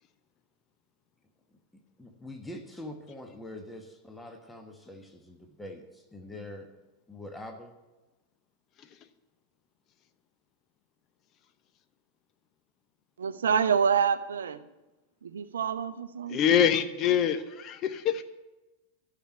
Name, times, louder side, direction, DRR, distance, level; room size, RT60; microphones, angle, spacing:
voice 1, 1.7-6.7 7.1-7.7, left 1 dB, 5° left, 4 dB, 1.3 m, -44 dB
voice 2, 13.2-14.7 15.2-16.4, right 7 dB, 65° right, 13 dB, 0.6 m, -27 dB
voice 3, 16.3-18.2, left 8 dB, 35° left, 10 dB, 0.8 m, -25 dB
12.5 x 6.1 x 8.6 m, 1.1 s
figure-of-eight pair, 90°, 0 cm